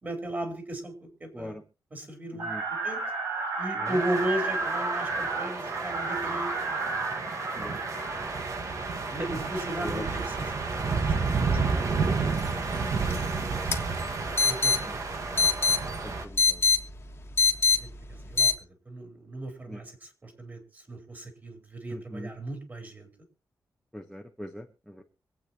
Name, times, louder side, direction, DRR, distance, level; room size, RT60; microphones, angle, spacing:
voice 1, 0.0-1.6 1.9-2.6 2.8-3.0 3.6-6.5 9.1-13.8 14.4-15.0 17.7-18.5 18.9-23.1, right 1 dB, 30° right, 4 dB, 3.9 m, -36 dB
sound 1, 2.4-8.6, right 3 dB, 65° right, 6.7 m, -32 dB
sound 2, 3.9-16.2, right 4 dB, 50° right, 1.7 m, -31 dB
sound 3, 12.3-18.6, left 5 dB, 35° left, 1.6 m, -27 dB
voice 2, 16.0-16.6 19.7-19.8 21.9-22.3 23.9-25.0, equal, ahead, 4 dB, 1.1 m, -41 dB
25.0 x 8.6 x 2.9 m, 0.32 s
wide cardioid pair, 155°, 7 cm